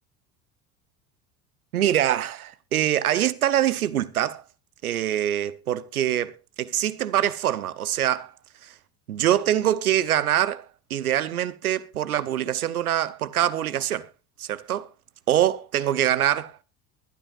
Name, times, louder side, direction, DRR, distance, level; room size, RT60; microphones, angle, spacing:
voice 1, 1.7-4.4 4.8-8.3 8.6-8.7 9.1-14.1 14.4-14.9 15.3-16.6, right 11 dB, 85° right, 0.9 m, -24 dB
22.5 x 12.0 x 2.5 m
hypercardioid pair, 70°, 43 cm